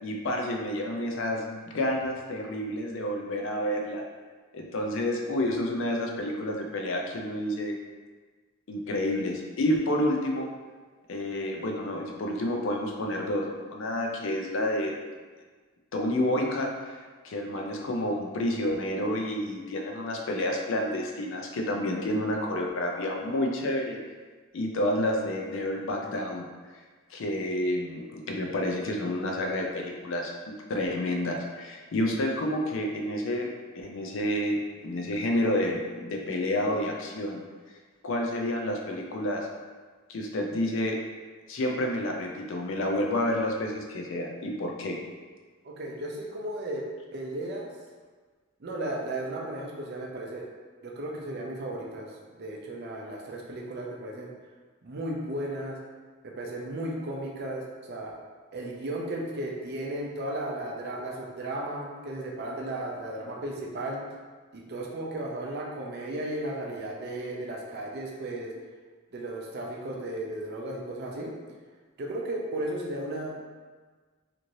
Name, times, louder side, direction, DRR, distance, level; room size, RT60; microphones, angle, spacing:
voice 1, 0.0-4.0 4.5-7.8 8.7-10.5 11.1-15.0 15.9-17.0 17.2-24.0 24.5-26.4 27.1-37.4 38.0-39.5 40.1-41.0 41.5-45.0, left 1 dB, 65° left, 1 dB, 0.4 m, -29 dB
voice 2, 45.6-46.8 47.1-47.7 48.6-50.5 50.8-54.3 54.8-55.8 56.2-58.1 58.5-64.0 64.5-68.5 69.1-71.3 72.0-73.5, right 1 dB, 50° right, -1 dB, 0.5 m, -35 dB
3.0 x 2.5 x 2.6 m, 1.4 s
head